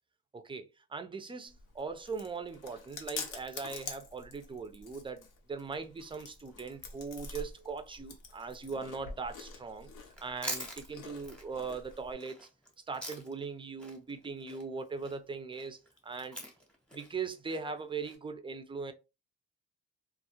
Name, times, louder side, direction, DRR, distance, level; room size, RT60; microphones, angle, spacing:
voice 1, 0.3-9.9 10.2-12.5 12.9-15.8 16.0-16.4 16.9-18.9, right 4 dB, 15° right, 0.4 m, -40 dB
Chewing mastication, 1.5-12.1, left 4 dB, 75° left, 0.7 m, -47 dB
Chewing mastication 2, 10.1-13.5 13.8-18.2, equal, 5° left, 0.8 m, -44 dB
2.3 x 2.1 x 2.9 m
cardioid pair, 95°, 32 cm